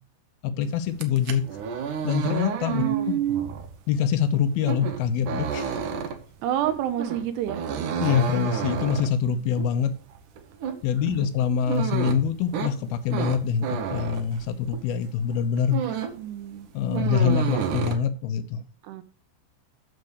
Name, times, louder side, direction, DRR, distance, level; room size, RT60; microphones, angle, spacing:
voice 1, 0.4-1.4 2.0-2.8 3.9-5.8 8.0-9.9 10.8-15.8 16.7-18.6, left 7 dB, 75° left, 2.6 m, -25 dB
sound 1, 0.9-15.0 15.3-16.3 16.5-18.0, right 7 dB, 70° right, 2.0 m, -31 dB
voice 2, 2.7-3.5 6.4-7.7 11.1-11.3 16.2-16.7 17.1-17.4 18.8-19.0, right 11 dB, 90° right, 2.9 m, -28 dB
9.5 x 6.8 x 4.8 m
omnidirectional pair, 4.8 m